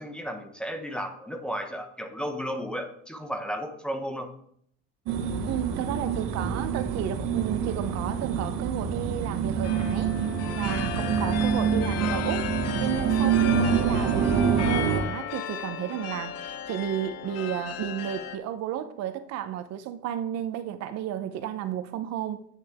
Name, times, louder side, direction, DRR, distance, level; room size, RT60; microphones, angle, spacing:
voice 1, 0.0-4.3, equal, 5° left, 0.9 m, -34 dB
sound 1, 5.1-15.0, right 7 dB, 80° right, 1.3 m, -26 dB
voice 2, 5.4-10.2 10.5-22.4, right 10 dB, 55° right, 0.8 m, -33 dB
sound 2, 9.6-18.4, left 8 dB, 55° left, 0.8 m, -35 dB
9.7 x 8.6 x 3.5 m
cardioid pair, 145°, 31 cm